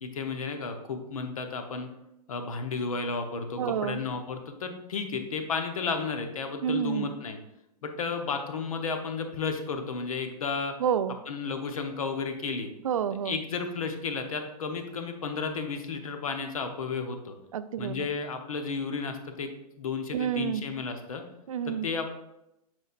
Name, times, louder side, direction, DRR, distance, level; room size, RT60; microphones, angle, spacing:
voice 1, 0.0-1.9 2.3-7.4 7.8-10.7 11.3-12.7 13.2-17.4 17.8-19.5 19.8-21.2 21.8-22.1, left 4 dB, 60° left, 6 dB, 0.9 m, -33 dB
voice 2, 3.6-4.0 6.6-7.1 10.8-11.2 12.8-13.4 17.5-18.1 20.1-20.7 21.5-21.9, right 8 dB, 60° right, 13 dB, 0.4 m, -29 dB
7.5 x 5.4 x 2.5 m, 0.86 s
figure-of-eight pair, 105°, 20 cm